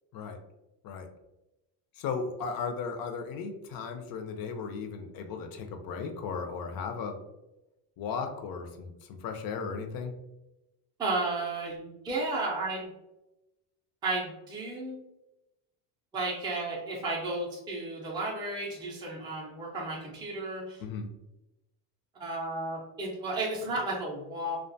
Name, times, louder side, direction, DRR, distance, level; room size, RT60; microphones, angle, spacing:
voice 1, 2.0-7.2 8.0-10.1 20.8-21.1, left 5 dB, 50° left, 5 dB, 0.5 m, -36 dB
voice 2, 11.0-12.9 14.0-15.0 16.1-20.8 22.2-24.6, right 2 dB, 10° right, -4 dB, 0.4 m, -33 dB
2.3 x 2.2 x 2.6 m, 0.94 s
cardioid pair, 120°, 45 cm